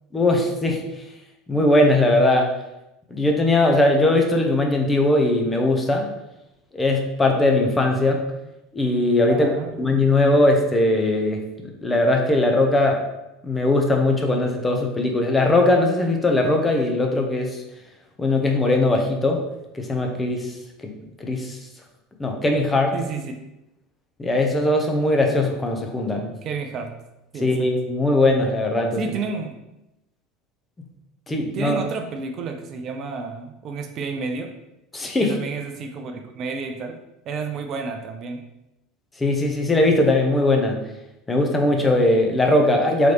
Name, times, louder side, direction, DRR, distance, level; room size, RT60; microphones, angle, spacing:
voice 1, 0.1-0.8 1.5-2.5 3.1-6.1 6.7-8.2 8.7-9.5 9.8-13.1 13.4-17.6 18.2-19.4 19.7-20.5 20.8-20.9 21.2-21.6 22.2-22.9 24.2-26.3 27.4-29.1 31.3-31.8 34.9-35.3 39.2-40.8 41.3-43.1, left 2 dB, 20° left, 2 dB, 0.8 m, -20 dB
voice 2, 9.3-9.8 22.9-23.3 26.4-26.9 27.3-27.5 29.0-29.6 31.5-34.5 35.2-37.0 37.3-38.4, right 4 dB, 45° right, 5 dB, 0.5 m, -30 dB
4.0 x 3.1 x 3.1 m, 0.91 s
hypercardioid pair, 75°, 0 cm